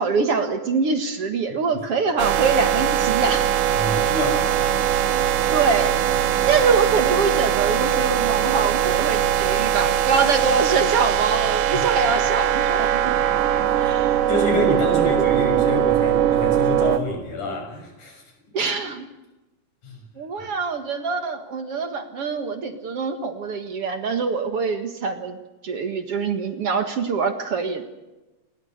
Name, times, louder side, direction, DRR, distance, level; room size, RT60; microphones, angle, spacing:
voice 1, 0.0-3.5 5.5-6.0 6.5-13.2 13.8-14.2 18.5-19.1 20.2-25.4 25.6-27.8, right 4 dB, 50° right, 8 dB, 2.4 m, -24 dB
sound 1, 2.2-17.0, right 10 dB, 85° right, 2.6 m, -21 dB
voice 2, 3.7-5.0 11.7-11.9 13.0-13.9 14.3-18.2 19.8-20.0, left 1 dB, 75° left, 3 dB, 8.3 m, -28 dB
27.5 x 22.0 x 6.7 m, 1.1 s
omnidirectional pair, 3.6 m